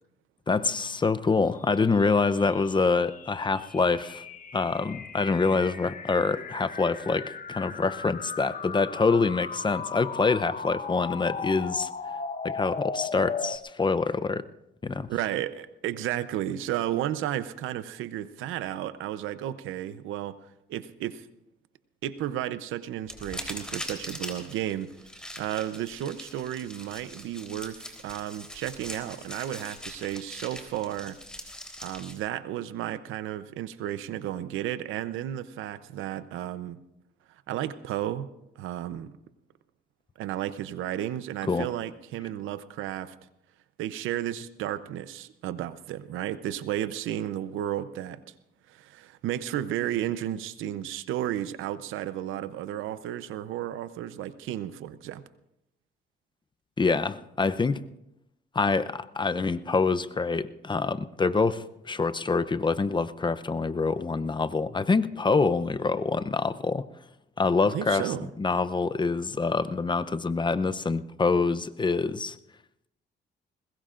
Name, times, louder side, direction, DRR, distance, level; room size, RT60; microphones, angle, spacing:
voice 1, 0.5-4.2 4.5-11.9 12.4-14.5 14.8-15.1 41.5-41.7 56.8-57.9 58.5-66.9 67.4-72.4, left 4 dB, 25° left, 13 dB, 0.6 m, -26 dB
sound 1, 1.7-13.6, left 5 dB, 40° left, 1.1 m, -37 dB
voice 2, 15.1-20.4 20.7-21.3 22.0-24.9 25.4-31.2 31.8-36.8 37.5-38.3 38.6-39.1 40.2-43.1 43.8-48.2 48.7-55.2 67.7-68.3, right 12 dB, 90° right, 14 dB, 0.7 m, -33 dB
sound 2, 23.1-32.2, equal, 5° left, 3.5 m, -41 dB
21.0 x 20.5 x 2.5 m, 0.84 s
cardioid pair, 90°, 20 cm